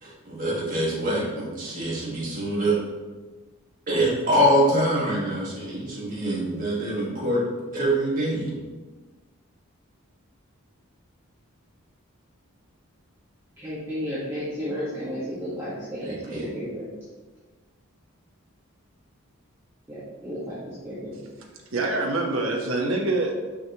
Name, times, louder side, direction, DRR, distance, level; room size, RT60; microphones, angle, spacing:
voice 1, 0.0-2.8 3.9-7.4 7.7-8.5 16.0-16.5, equal, 40° right, -5 dB, 1.8 m, -24 dB
voice 2, 13.6-16.9 19.9-21.3, equal, 10° right, -12 dB, 1.5 m, -33 dB
voice 3, 21.7-23.3, right 2 dB, 65° right, 0 dB, 1.1 m, -25 dB
6.3 x 6.0 x 3.0 m, 1.3 s
head